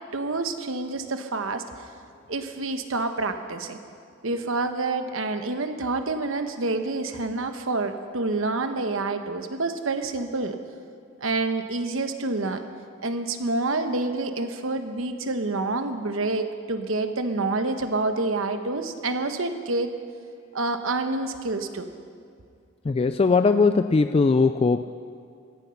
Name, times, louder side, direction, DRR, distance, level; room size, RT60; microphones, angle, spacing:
voice 1, 0.1-1.6 2.3-3.8 4.2-10.6 11.2-12.6 13.0-19.9 20.5-21.9, right 3 dB, 70° right, 8 dB, 1.1 m, -28 dB
voice 2, 22.9-24.8, left 4 dB, 30° left, 9 dB, 0.3 m, -20 dB
16.0 x 14.5 x 5.8 m, 2.3 s
head